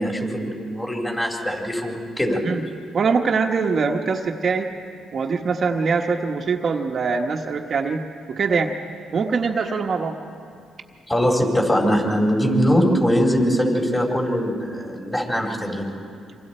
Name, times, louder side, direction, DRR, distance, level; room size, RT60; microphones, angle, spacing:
voice 1, 0.0-2.4 11.1-16.1, equal, 20° left, 0 dB, 4.3 m, -22 dB
voice 2, 2.9-4.7 5.1-8.0 8.3-8.7 9.1-10.2, right 5 dB, 50° right, 2 dB, 1.2 m, -23 dB
27.0 x 25.0 x 4.4 m, 2.4 s
cardioid pair, 90°, 0 cm